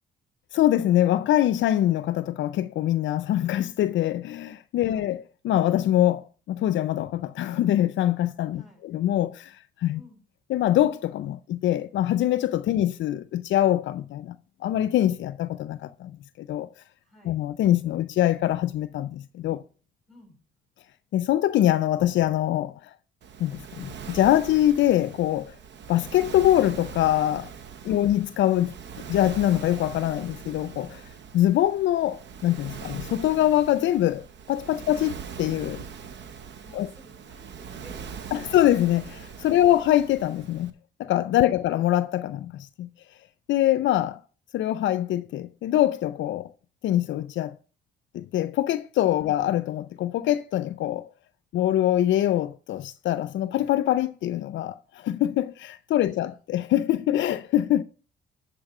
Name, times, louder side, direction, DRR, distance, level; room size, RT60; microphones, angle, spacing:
voice 1, 0.5-9.5 9.8-10.0 10.5-14.4 14.6-16.1 16.4-16.7 17.2-19.6 21.1-22.7 23.4-25.5 25.9-27.5 27.8-28.7 29.1-31.0 31.3-35.8 36.7-36.9 38.3-40.7 41.0-42.9 43.5-44.2 44.5-46.5 46.8-47.6 48.1-51.0 51.5-57.8, left 13 dB, 70° left, 0.5 m, -24 dB
voice 2, 4.8-5.1 8.6-8.8 9.9-10.2 12.7-12.8 17.0-17.4 20.1-20.4 27.9-28.1 34.7-34.8 35.8-35.9 36.6-38.6 39.4-39.8 41.4-41.6 49.2-49.3, equal, ahead, 4.2 m, -54 dB
Waves surf, 23.2-40.7, right 6 dB, 65° right, 0.9 m, -41 dB
12.0 x 4.3 x 5.9 m
cardioid pair, 90°, 20 cm